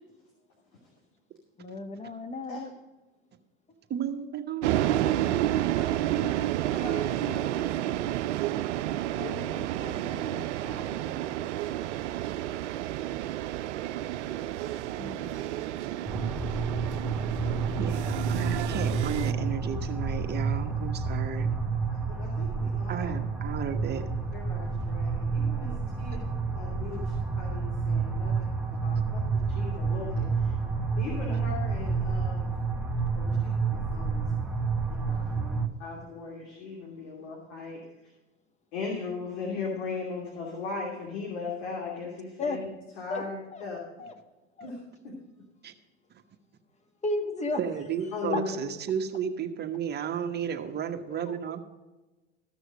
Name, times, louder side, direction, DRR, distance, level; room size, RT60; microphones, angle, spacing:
voice 1, 1.6-2.7 12.4-12.9 13.9-14.3 15.0-15.8 17.7-18.1 42.4-42.6 43.1-43.2 43.5-43.6 44.0-44.1 44.6-44.7 47.0-47.6 48.3-48.4 51.1-51.4, left 2 dB, 20° left, 7 dB, 1.5 m, -35 dB
voice 2, 3.9-6.3 17.8-21.5 22.9-24.1 26.9-27.0 45.6-45.7 47.6-51.6, right 8 dB, 30° right, 5 dB, 1.2 m, -33 dB
sound 1, 4.6-19.3, right 13 dB, 70° right, 0.6 m, -30 dB
voice 3, 5.7-6.3 6.7-8.2 9.1-11.1 22.1-23.1 24.3-26.2 26.5-28.3 28.8-29.2 29.5-30.6 31.0-32.5 33.1-34.3 35.0-37.8 38.7-42.6 43.0-43.4 43.6-43.8 44.6-44.8 45.0-45.1 48.1-48.5, left 4 dB, 65° left, -2 dB, 2.8 m, -38 dB
sound 2, 16.1-35.7, right 4 dB, ahead, 1.1 m, -29 dB
14.5 x 6.4 x 5.0 m, 1.1 s
hypercardioid pair, 95°, 35 cm